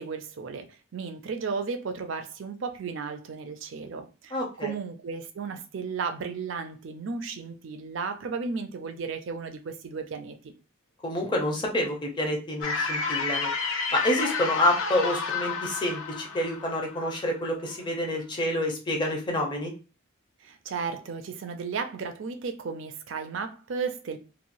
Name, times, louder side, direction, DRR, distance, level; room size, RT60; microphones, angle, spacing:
voice 1, 0.0-10.5 20.4-24.2, right 5 dB, 65° right, 0.4 m, -34 dB
voice 2, 4.3-4.7 11.0-13.5 13.9-19.7, left 1 dB, 25° left, 0.7 m, -28 dB
sound 1, 12.6-17.7, left 4 dB, 80° left, 0.6 m, -31 dB
3.0 x 2.2 x 2.6 m
head